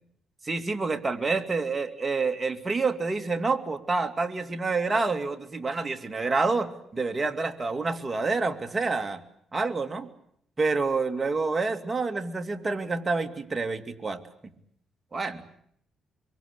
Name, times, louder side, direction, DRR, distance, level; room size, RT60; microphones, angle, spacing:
voice 1, 0.4-9.2 9.5-10.1 10.6-14.2 15.1-15.4, right 3 dB, 25° right, 6 dB, 2.6 m, -28 dB
25.5 x 24.0 x 8.4 m, 0.69 s
cardioid pair, 100°, 0 cm